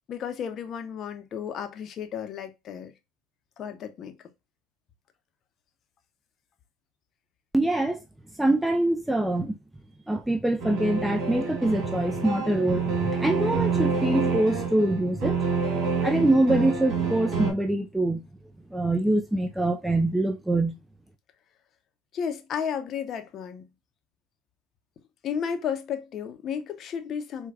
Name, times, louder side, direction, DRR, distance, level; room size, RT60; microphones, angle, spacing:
voice 1, 0.1-2.9 3.6-4.1 22.1-23.7 25.2-27.5, left 7 dB, 45° left, 0.7 m, -33 dB
voice 2, 7.5-8.0 8.4-9.6 10.1-15.4 16.0-18.2 18.7-20.7, right 1 dB, 5° right, 0.4 m, -24 dB
sound 1, 10.6-17.5, right 5 dB, 60° right, 1.7 m, -28 dB
4.5 x 2.2 x 2.3 m
supercardioid pair, 95°, 0 cm